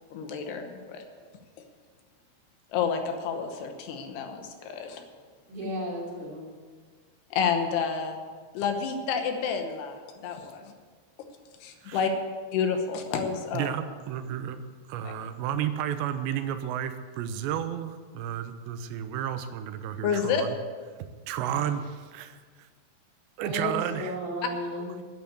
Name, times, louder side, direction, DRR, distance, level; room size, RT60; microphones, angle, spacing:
voice 1, 0.1-1.0 2.7-5.0 7.3-8.2 8.5-10.7 11.6-12.1 12.5-13.8 15.0-15.1 20.0-20.4 24.4-24.5, left 6 dB, 75° left, 5 dB, 3.0 m, -29 dB
voice 2, 5.5-6.5 23.4-24.9, equal, 60° right, -4 dB, 5.1 m, -34 dB
voice 3, 13.5-14.6 14.9-20.6 21.0-22.4 23.4-24.2, right 9 dB, 90° right, 10 dB, 2.9 m, -32 dB
10.5 x 9.2 x 8.3 m, 1.6 s
omnidirectional pair, 5.0 m